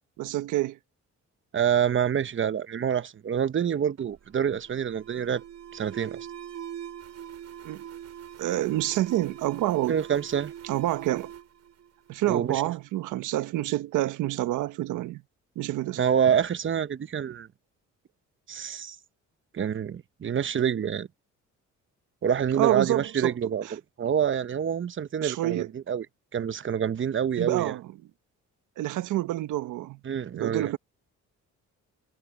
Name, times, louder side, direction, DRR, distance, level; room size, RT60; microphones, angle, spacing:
voice 1, 0.2-0.8 7.6-7.8 8.4-10.0 10.6-11.3 12.1-15.2 15.5-16.0 22.6-23.7 25.2-25.7 27.4-27.9 28.8-30.0 30.3-30.8, right 15 dB, 90° right, 1.2 m, -28 dB
voice 2, 1.5-5.4 5.7-6.3 9.9-10.5 12.2-12.6 16.0-17.5 18.5-19.0 19.5-21.1 22.2-23.6 24.0-26.1 26.3-27.7 30.0-30.7, right 8 dB, 40° right, 1.0 m, -27 dB
Alarm, 4.0-12.6, right 9 dB, 60° right, 6.6 m, -43 dB
cardioid pair, 90°, 30 cm